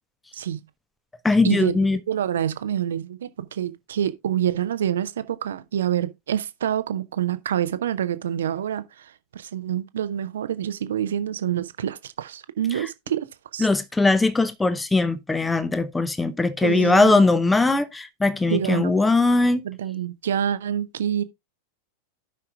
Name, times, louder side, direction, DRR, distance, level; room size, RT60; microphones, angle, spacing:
voice 1, 0.3-0.7 1.4-1.8 2.1-13.3 13.5-13.7 16.6-17.2 18.5-19.1 19.6-21.2, right 10 dB, 65° right, 0.7 m, -27 dB
voice 2, 1.2-2.0 13.6-19.6, left 3 dB, 10° left, 0.8 m, -20 dB
16.5 x 5.7 x 2.3 m
figure-of-eight pair, 90°, 0 cm